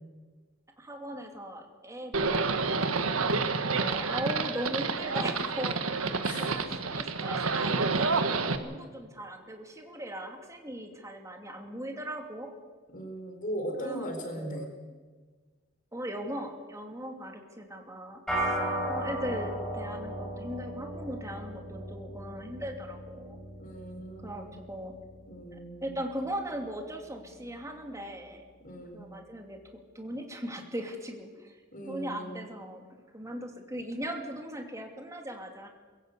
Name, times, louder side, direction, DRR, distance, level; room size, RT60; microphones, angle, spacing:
voice 1, 0.8-5.8 6.4-6.6 6.9-8.1 8.6-12.5 13.8-14.1 14.3-14.6 15.9-18.6 18.9-23.4 24.2-24.9 25.5-28.4 28.9-29.6 29.9-31.6 31.9-32.8 33.1-35.7, equal, 15° right, 3 dB, 2.6 m, -39 dB
Livestock farm animals working animals, 2.1-8.6, right 4 dB, 85° right, 1.5 m, -29 dB
voice 2, 6.2-6.7 12.9-14.7 18.4-19.0 23.6-24.6 25.3-26.0 28.6-29.0 31.7-32.5, right 1 dB, 40° left, 3 dB, 4.5 m, -39 dB
sound 1, 18.3-27.8, right 1 dB, ahead, 6.7 m, -37 dB
22.5 x 16.5 x 8.3 m, 1.5 s
head